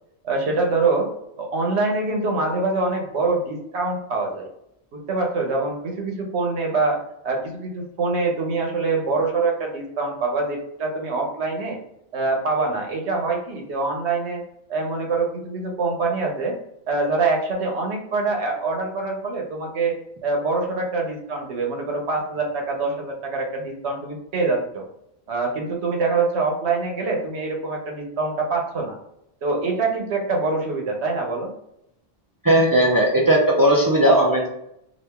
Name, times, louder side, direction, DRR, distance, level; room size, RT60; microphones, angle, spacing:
voice 1, 0.2-1.1 1.4-4.5 4.9-11.8 12.1-14.4 14.7-16.6 16.9-20.0 20.2-24.8 25.3-29.0 29.4-31.5, right 3 dB, 80° right, 1 dB, 1.0 m, -24 dB
voice 2, 32.4-34.5, right 1 dB, 35° right, -3 dB, 0.3 m, -17 dB
2.9 x 2.5 x 3.4 m, 0.77 s
omnidirectional pair, 1.1 m